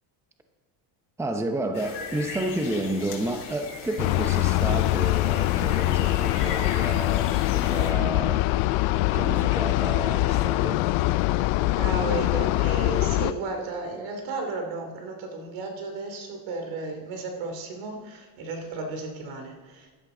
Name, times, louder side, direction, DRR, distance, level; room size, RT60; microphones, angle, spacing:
voice 1, 1.2-8.5 9.1-10.9, right 1 dB, 5° right, 6 dB, 0.8 m, -31 dB
sound 1, 1.7-7.9, left 5 dB, 60° left, 3.1 m, -38 dB
sound 2, 4.0-13.3, left 18 dB, 85° left, 0.6 m, -23 dB
voice 2, 11.7-19.9, right 3 dB, 75° right, 3 dB, 3.1 m, -34 dB
16.0 x 12.0 x 3.9 m, 1.4 s
cardioid pair, 120°, 46 cm